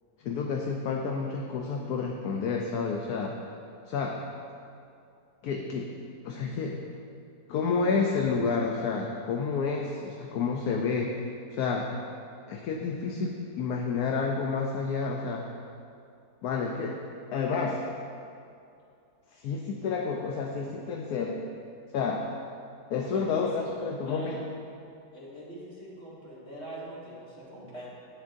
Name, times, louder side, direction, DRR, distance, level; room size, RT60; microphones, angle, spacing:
voice 1, 0.2-3.3 3.9-4.2 5.4-5.9 6.2-6.8 7.5-11.1 11.5-11.9 12.5-15.4 16.4-17.0 17.3-17.8 19.3-21.4 21.9-22.3 22.9-24.4, left 5 dB, 70° left, 1 dB, 1.1 m, -30 dB
voice 2, 23.1-23.7 24.0-24.3 25.1-27.9, right 1 dB, 40° left, -8 dB, 2.5 m, -42 dB
11.0 x 9.6 x 2.6 m, 2.5 s
omnidirectional pair, 1.8 m